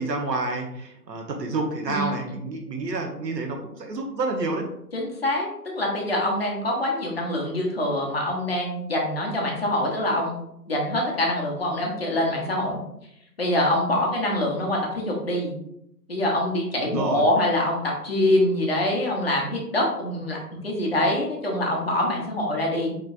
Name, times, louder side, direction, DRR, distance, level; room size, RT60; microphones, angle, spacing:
voice 1, 0.0-4.6 16.9-17.2, right 2 dB, 75° right, 3 dB, 1.1 m, -29 dB
voice 2, 4.9-5.5 5.7-12.8 13.4-15.6 16.1-20.4 20.6-23.0, left 1 dB, 35° left, -1 dB, 0.9 m, -25 dB
4.9 x 3.2 x 2.5 m, 0.77 s
hypercardioid pair, 175°, 49 cm